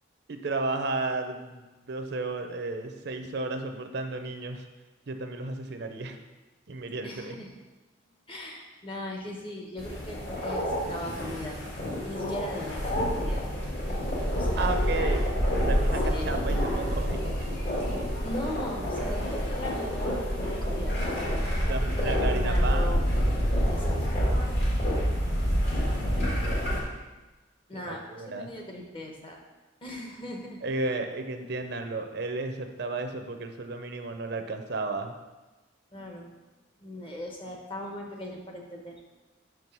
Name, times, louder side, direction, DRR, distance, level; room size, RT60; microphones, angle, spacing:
voice 1, 0.3-4.6 5.1-6.2 6.7-7.3 14.6-15.2 15.6-17.3 21.7-23.1 25.4-26.9 27.7-28.5 30.6-35.1, right 3 dB, 60° right, 6 dB, 0.6 m, -33 dB
voice 2, 7.0-7.6 8.3-11.6 12.0-13.5 14.3-15.2 16.0-16.4 18.2-21.6 22.0-23.0 23.7-24.3 27.7-29.4 29.8-30.7 35.9-36.3 36.8-39.0, left 1 dB, 25° left, 1 dB, 1.0 m, -39 dB
sound 1, 9.8-26.8, equal, 55° left, 2.2 m, -27 dB
6.2 x 4.6 x 5.4 m, 1.2 s
head